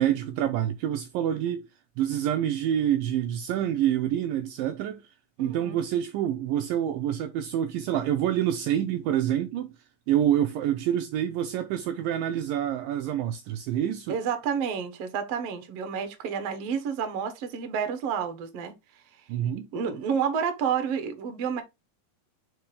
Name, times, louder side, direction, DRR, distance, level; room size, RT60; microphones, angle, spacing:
voice 1, 0.0-1.7 2.0-5.0 5.4-9.7 10.1-14.2 19.3-19.7, right 10 dB, 85° right, 2.0 m, -27 dB
voice 2, 5.4-5.8 14.1-18.7 19.7-21.6, right 7 dB, 70° right, 1.5 m, -30 dB
5.1 x 4.6 x 4.8 m
omnidirectional pair, 4.6 m